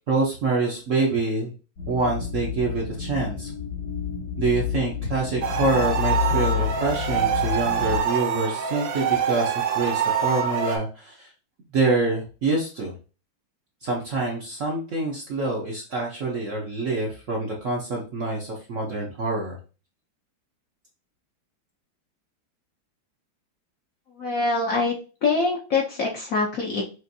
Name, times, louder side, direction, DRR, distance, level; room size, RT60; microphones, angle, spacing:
voice 1, 0.1-1.5 1.9-3.5 4.4-11.3 11.7-12.9 13.8-19.6, right 3 dB, 55° right, -2 dB, 0.9 m, -26 dB
sound 1, 1.8-8.0, left 9 dB, 80° left, 3.3 m, -29 dB
sound 2, 5.4-10.8, right 7 dB, 75° right, 1.4 m, -25 dB
voice 2, 24.2-25.0 25.2-26.8, left 3 dB, 60° left, -1 dB, 0.9 m, -24 dB
6.1 x 2.5 x 2.6 m, 0.34 s
omnidirectional pair, 2.2 m